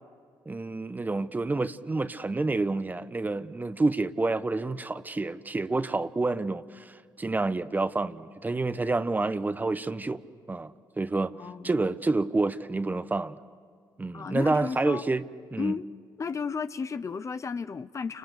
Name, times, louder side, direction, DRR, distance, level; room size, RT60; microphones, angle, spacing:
voice 1, 0.5-10.2 10.5-11.3 11.6-13.4 14.0-15.2 15.5-15.7, right 3 dB, 20° right, 1.1 m, -28 dB
voice 2, 11.3-11.8 14.1-15.0 15.6-15.9 16.2-18.2, left 5 dB, 35° left, 0.8 m, -33 dB
30.0 x 27.5 x 6.8 m
supercardioid pair, 75°, 8 cm